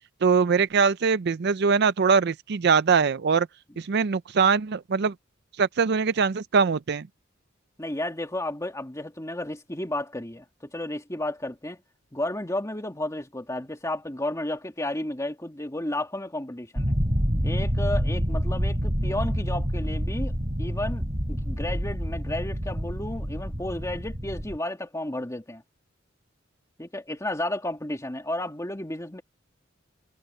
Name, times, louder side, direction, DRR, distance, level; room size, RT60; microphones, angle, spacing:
voice 1, 0.2-3.5 3.8-5.1 5.6-7.1, right 5 dB, 55° right, 0.5 m, -22 dB
voice 2, 7.8-11.8 12.1-16.9 17.4-25.6 26.8-29.2, left 1 dB, 15° left, 2.3 m, -32 dB
sound 1, 16.8-24.6, equal, 30° right, 6.9 m, -27 dB
head